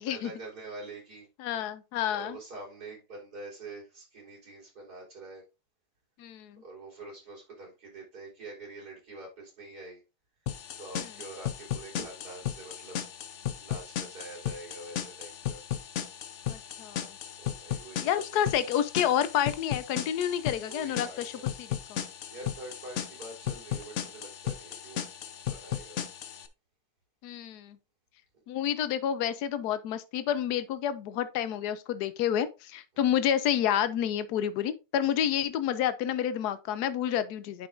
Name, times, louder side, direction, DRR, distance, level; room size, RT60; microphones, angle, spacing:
voice 1, 0.0-1.3 2.1-5.4 6.6-10.0 10.8-13.0 13.6-15.6 17.4-18.4 20.5-21.5 22.3-25.0 25.4-26.0 28.3-28.4 32.9-33.0, right 2 dB, 75° right, 4.5 m, -45 dB
voice 2, 1.4-2.4 6.2-6.6 11.0-11.1 16.5-17.1 18.0-21.3 21.6-22.0 27.2-27.8 28.5-37.7, left 10 dB, 85° left, 1.2 m, -29 dB
sound 1, 10.5-26.5, left 10 dB, 60° left, 0.9 m, -36 dB
10.0 x 5.2 x 2.5 m
omnidirectional pair, 1.7 m